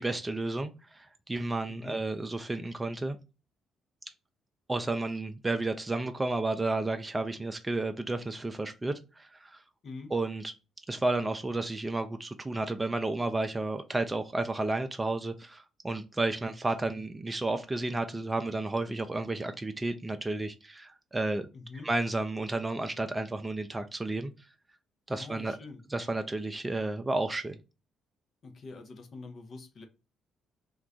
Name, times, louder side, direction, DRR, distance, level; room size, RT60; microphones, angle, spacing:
voice 1, 0.0-3.2 4.7-9.6 10.1-10.5 10.9-21.5 21.8-24.3 25.1-25.6 25.9-27.6, right 2 dB, 20° right, 0.3 m, -32 dB
voice 2, 1.7-2.0 9.8-10.1 16.4-16.5 16.9-17.0 21.5-21.9 25.1-25.8 28.4-29.9, left 3 dB, 50° left, 0.6 m, -45 dB
2.3 x 2.2 x 3.6 m
hypercardioid pair, 45°, 0 cm